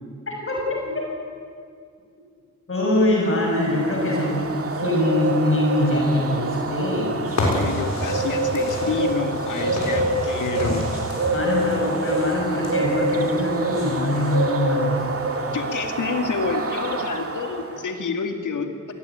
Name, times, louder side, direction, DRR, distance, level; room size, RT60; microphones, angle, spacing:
voice 1, 0.3-1.0 2.7-7.2 11.3-15.1, left 1 dB, 45° left, -1 dB, 6.6 m, -23 dB
Bird, 3.2-17.9, right 2 dB, 50° right, 2.5 m, -27 dB
sound 1, 7.3-14.4, left 1 dB, 65° left, 7.0 m, -30 dB
voice 2, 7.4-10.9 15.5-18.9, left 5 dB, 80° left, 6 dB, 2.4 m, -28 dB
22.5 x 18.0 x 9.3 m, 2.2 s
cardioid pair, 70°, 30 cm